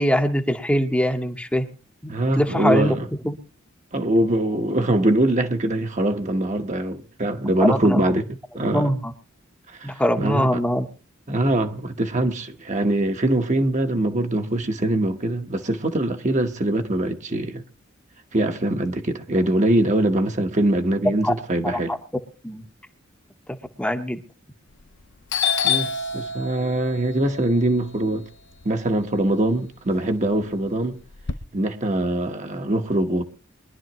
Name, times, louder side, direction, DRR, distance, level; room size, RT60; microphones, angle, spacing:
voice 1, 0.0-1.7 2.3-2.9 3.2-3.3 7.6-8.0 8.7-9.1 9.8-10.9 21.2-21.3 21.6-22.0 22.4-22.6 23.8-24.2, equal, 5° left, 1.0 m, -22 dB
voice 2, 2.1-3.1 3.9-8.2 8.5-8.8 9.7-10.6 11.3-17.6 18.3-21.9 25.6-28.3 28.6-31.0 31.5-33.2, right 1 dB, 35° right, 1.1 m, -23 dB
Doorbell, 24.7-25.0 25.3-29.4 29.8-31.3, left 7 dB, 60° left, 0.8 m, -28 dB
23.5 x 11.5 x 3.0 m
head